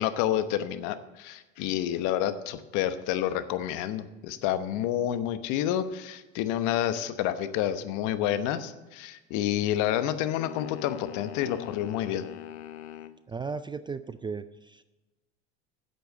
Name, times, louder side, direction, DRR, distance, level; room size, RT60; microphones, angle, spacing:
voice 1, 0.0-12.2, left 11 dB, 60° left, 11 dB, 1.0 m, -29 dB
sound 1, 10.4-13.2, left 11 dB, 85° left, 0.7 m, -42 dB
voice 2, 13.3-14.8, right 5 dB, 15° right, 12 dB, 0.4 m, -36 dB
8.3 x 8.0 x 7.8 m, 1.1 s
hypercardioid pair, 90°, 33 cm